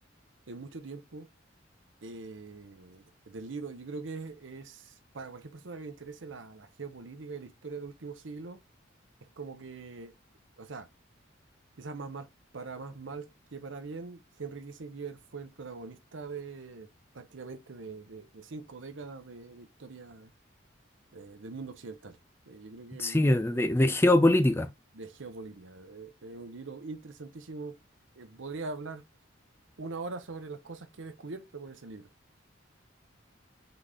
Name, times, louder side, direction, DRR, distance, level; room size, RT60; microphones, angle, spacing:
voice 1, 0.5-1.3 2.0-8.6 9.4-10.1 10.6-10.9 11.8-12.3 12.5-16.9 17.1-20.3 21.1-22.2 22.5-23.6 24.9-27.8 28.2-29.0 29.8-32.1, right 4 dB, 75° right, 0.7 m, -42 dB
voice 2, 23.0-24.7, left 1 dB, 10° left, 0.3 m, -22 dB
4.0 x 3.6 x 3.3 m
head